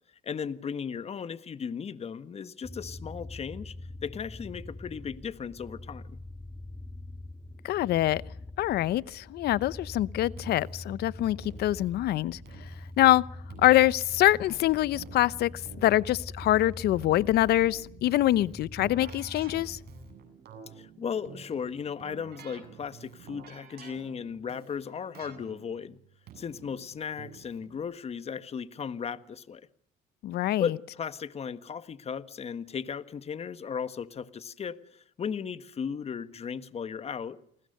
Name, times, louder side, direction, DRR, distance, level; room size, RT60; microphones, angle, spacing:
voice 1, 0.2-3.7 4.0-6.2 20.7-26.0 26.3-29.7 30.6-37.4, left 6 dB, 40° left, 1.6 m, -36 dB
sound 1, 2.6-20.2, left 2 dB, 10° left, 1.9 m, -44 dB
voice 2, 7.6-8.2 8.6-12.4 13.0-13.2 13.6-19.8 30.2-30.8, left 14 dB, 70° left, 0.9 m, -24 dB
Keyboard (musical), 10.4-27.8, right 7 dB, 70° right, 7.9 m, -51 dB
29.0 x 20.0 x 6.7 m
cardioid pair, 110°, 17 cm